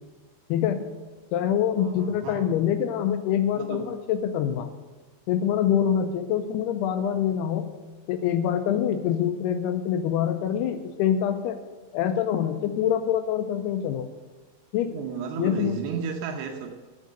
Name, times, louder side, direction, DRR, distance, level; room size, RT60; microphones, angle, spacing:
voice 1, 0.5-0.8 1.3-4.7 5.3-7.7 8.1-11.6 11.9-14.1 14.7-14.9 15.4-15.8, left 9 dB, 90° left, 8 dB, 2.7 m, -25 dB
voice 2, 1.8-2.6 3.5-4.0 14.8-16.7, right 6 dB, 85° right, 3 dB, 3.0 m, -34 dB
11.0 x 7.6 x 6.6 m, 1.3 s
omnidirectional pair, 4.7 m